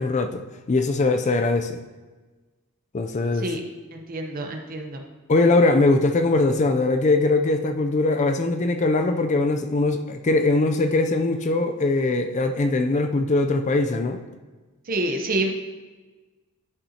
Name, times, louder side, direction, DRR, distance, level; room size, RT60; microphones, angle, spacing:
voice 1, 0.0-1.8 2.9-3.5 5.3-14.2, left 2 dB, 30° left, 0.4 m, -21 dB
voice 2, 3.9-5.0 14.9-15.5, right 1 dB, 40° right, 0.8 m, -27 dB
11.5 x 5.5 x 2.8 m
head